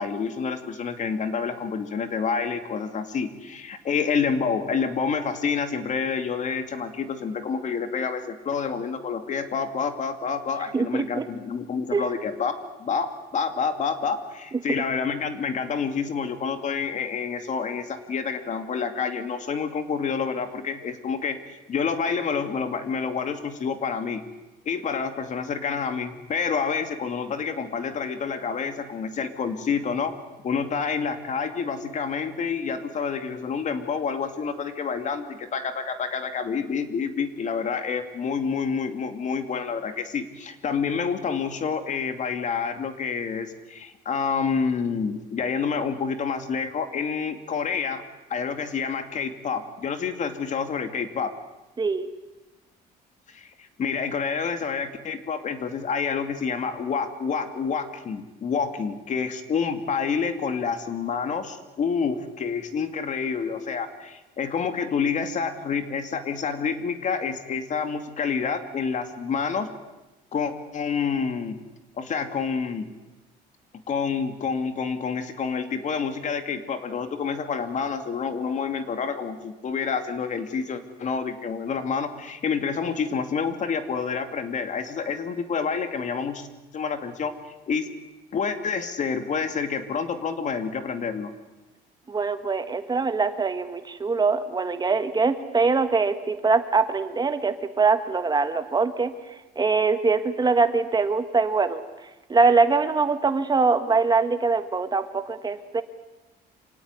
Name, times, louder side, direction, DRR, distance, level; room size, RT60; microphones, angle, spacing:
voice 1, 0.0-21.4 21.7-24.2 24.7-30.1 30.4-48.0 48.3-51.3 53.3-53.5 53.8-69.7 70.3-71.6 72.0-72.9 73.9-86.5 86.7-87.9 88.3-91.3, left 6 dB, 45° left, 8 dB, 2.6 m, -28 dB
voice 2, 10.7-11.3 11.9-12.1 51.8-52.1 92.1-105.8, right 4 dB, 25° right, 9 dB, 1.5 m, -23 dB
26.5 x 17.5 x 9.7 m, 1.1 s
cardioid pair, 110°, 17 cm